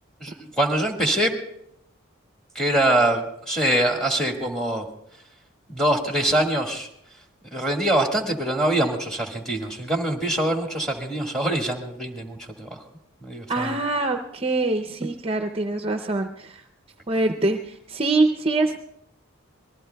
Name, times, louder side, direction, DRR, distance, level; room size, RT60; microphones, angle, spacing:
voice 1, 0.2-1.3 2.5-4.8 5.7-6.9 7.5-12.8 13.2-13.7, right 1 dB, 5° left, 1 dB, 1.6 m, -24 dB
voice 2, 13.5-16.6 17.1-18.8, right 2 dB, 25° right, 6 dB, 0.5 m, -24 dB
25.5 x 19.5 x 2.3 m, 0.77 s
head